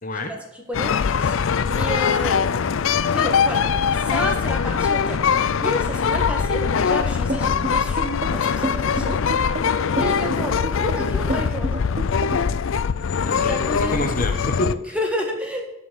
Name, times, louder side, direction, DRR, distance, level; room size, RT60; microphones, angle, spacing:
voice 1, 0.0-0.3 13.2-15.0, left 1 dB, 40° left, 4 dB, 1.0 m, -28 dB
sound 1, 0.7-14.7, left 6 dB, 70° left, 0.4 m, -22 dB
voice 2, 0.7-2.7 3.1-5.2 5.6-9.2 9.6-11.8 13.4-14.1 14.9-15.6, equal, 5° right, 2 dB, 1.5 m, -30 dB
sound 2, 7.3-12.6, right 1 dB, 30° right, 0.8 m, -29 dB
11.0 x 5.4 x 6.4 m, 0.94 s
head